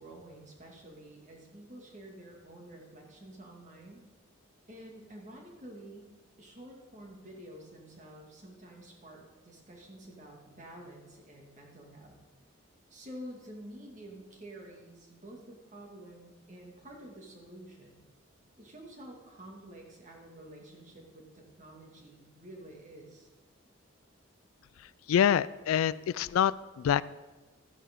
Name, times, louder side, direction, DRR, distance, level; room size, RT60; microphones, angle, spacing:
voice 1, 0.0-4.0 4.7-6.1 6.4-12.2 12.9-18.0 18.6-23.3, right 1 dB, 35° right, 0 dB, 2.0 m, -49 dB
voice 2, 25.1-27.0, left 9 dB, 85° left, 18 dB, 0.3 m, -26 dB
13.5 x 10.0 x 3.7 m, 1.2 s
head